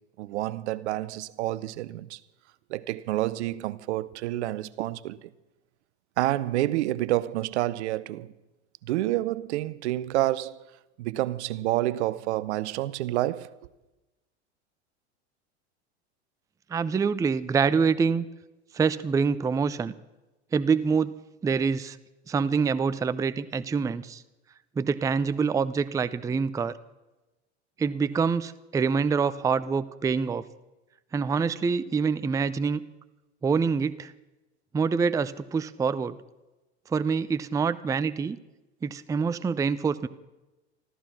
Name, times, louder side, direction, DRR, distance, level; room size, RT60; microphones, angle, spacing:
voice 1, 0.2-2.2 2.7-5.3 6.2-8.3 8.8-10.6 11.0-13.6, right 15 dB, 75° right, 0.8 m, -28 dB
voice 2, 16.7-18.3 18.7-19.9 20.5-21.1 21.4-22.0 22.3-24.2 24.8-26.7 27.8-30.4 31.1-32.8 33.4-34.1 34.7-36.2 36.9-38.4 38.8-40.1, right 5 dB, 10° right, 0.4 m, -26 dB
14.0 x 14.0 x 6.0 m
hypercardioid pair, 100°, 35 cm